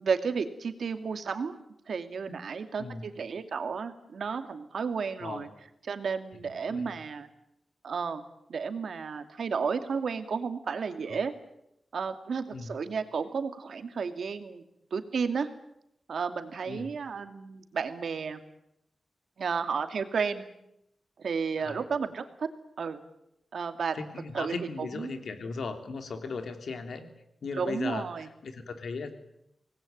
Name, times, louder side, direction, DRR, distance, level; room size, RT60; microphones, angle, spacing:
voice 1, 0.0-1.6 1.9-5.5 5.9-7.3 7.8-8.2 8.5-11.3 11.9-14.6 14.9-15.5 16.1-18.4 19.4-20.4 21.2-22.5 22.8-23.0 23.5-24.0 24.3-24.7 24.9-25.1 27.5-28.3, right 5 dB, 75° right, 8 dB, 2.4 m, -32 dB
voice 2, 6.4-7.0 12.5-12.7 16.7-16.9 21.6-21.8 23.9-27.1 27.4-29.1, left 4 dB, 80° left, 7 dB, 3.2 m, -37 dB
25.5 x 19.5 x 9.2 m, 0.80 s
wide cardioid pair, 155°, 0 cm